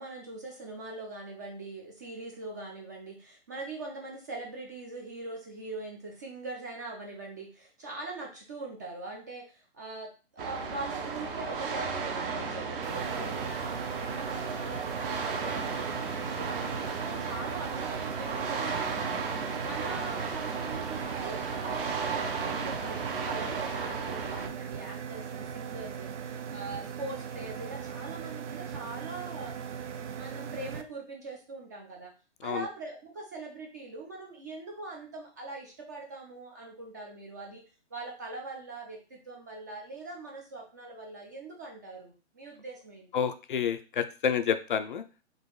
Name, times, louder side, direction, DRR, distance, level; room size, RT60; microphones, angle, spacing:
voice 1, 0.0-19.3 19.6-26.1 26.5-29.6 29.9-32.1 32.4-37.6 37.9-43.3, right 2 dB, 15° right, 0 dB, 0.4 m, -42 dB
sound 1, 10.4-24.5, right 5 dB, 50° right, 0.9 m, -34 dB
sound 2, 12.8-30.8, right 7 dB, 85° right, 0.6 m, -39 dB
voice 2, 43.1-45.0, left 7 dB, 45° left, 9 dB, 0.4 m, -29 dB
3.8 x 2.6 x 3.8 m, 0.33 s
hypercardioid pair, 135°, 35 cm